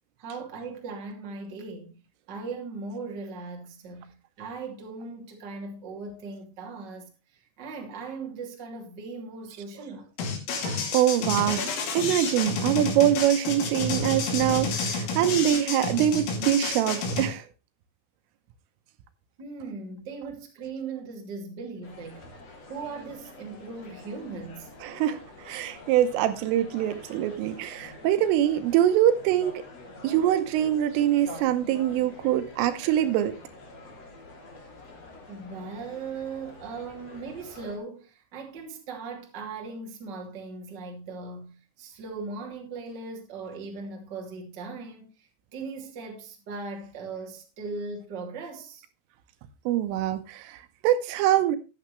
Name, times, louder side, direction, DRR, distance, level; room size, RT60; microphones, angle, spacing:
voice 1, 0.2-2.0 2.3-10.1 19.4-22.2 22.7-24.7 35.3-48.8, right 4 dB, 30° right, 2.1 m, -39 dB
sound 1, 10.2-17.3, left 3 dB, 75° left, 5.3 m, -29 dB
voice 2, 10.6-11.7 11.9-17.5 24.8-29.6 30.0-33.3 49.7-51.6, right 11 dB, 80° right, 3.4 m, -24 dB
sound 2, 21.8-37.8, left 2 dB, 35° left, 3.2 m, -47 dB
13.5 x 10.5 x 3.2 m
omnidirectional pair, 5.9 m